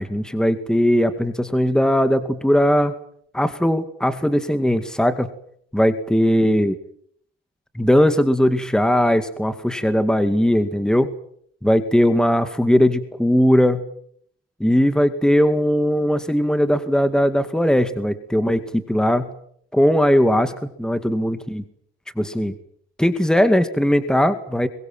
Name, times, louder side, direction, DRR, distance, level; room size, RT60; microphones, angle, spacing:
voice 1, 0.0-2.9 3.3-5.3 5.7-6.8 7.7-11.1 11.6-13.8 14.6-19.3 19.7-21.6 22.2-22.5 23.0-24.7, equal, 5° left, 10 dB, 2.2 m, -19 dB
25.0 x 23.0 x 7.7 m, 0.66 s
cardioid pair, 90°, 20 cm